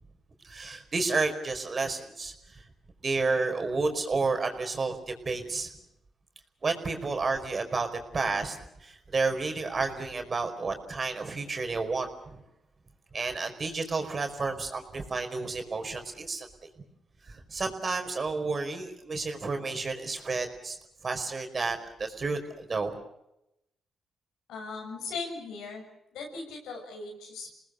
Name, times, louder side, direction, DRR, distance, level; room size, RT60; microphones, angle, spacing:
voice 1, 0.4-2.6 3.0-5.7 6.6-7.9 8.1-12.4 13.1-16.5 17.3-20.8 21.0-22.9, right 3 dB, 45° right, 5 dB, 4.9 m, -31 dB
voice 2, 24.5-25.8 26.1-27.5, left 4 dB, 85° left, 2 dB, 6.7 m, -38 dB
28.5 x 19.5 x 6.8 m, 0.84 s
supercardioid pair, 55°, 0 cm